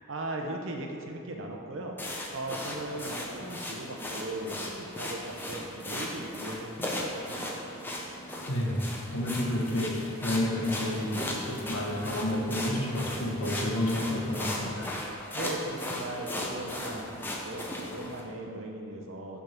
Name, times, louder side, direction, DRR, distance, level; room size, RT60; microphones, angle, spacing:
voice 1, 0.1-2.0 2.3-7.6 15.3-19.4, right 1 dB, 65° right, 2 dB, 0.7 m, -38 dB
sound 1, 2.0-18.2, left 1 dB, 10° left, 0.5 m, -37 dB
voice 2, 8.5-8.8 9.1-14.9, left 1 dB, 85° left, -3 dB, 1.2 m, -30 dB
6.3 x 3.5 x 5.7 m, 2.6 s
head